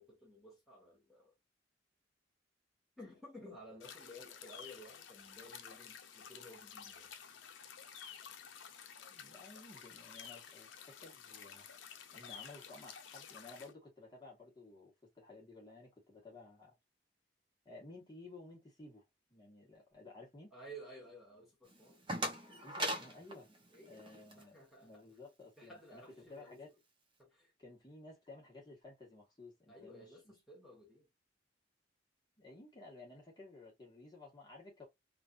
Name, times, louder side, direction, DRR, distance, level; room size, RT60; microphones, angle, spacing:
voice 1, 0.0-1.3 3.0-7.1 20.5-22.0 23.7-25.0 25.6-26.6 27.2-27.5 29.7-31.1, equal, ahead, 1.3 m, -55 dB
sound 1, 3.8-13.7, left 7 dB, 90° left, 0.6 m, -52 dB
voice 2, 9.1-11.7 12.1-16.7 17.6-19.0 19.3-20.5 22.6-23.5 23.9-26.7 27.6-30.3 32.4-34.8, left 2 dB, 25° left, 1.3 m, -55 dB
sound 2, 21.7-24.4, right 1 dB, 25° right, 0.9 m, -40 dB
3.2 x 2.5 x 2.4 m
head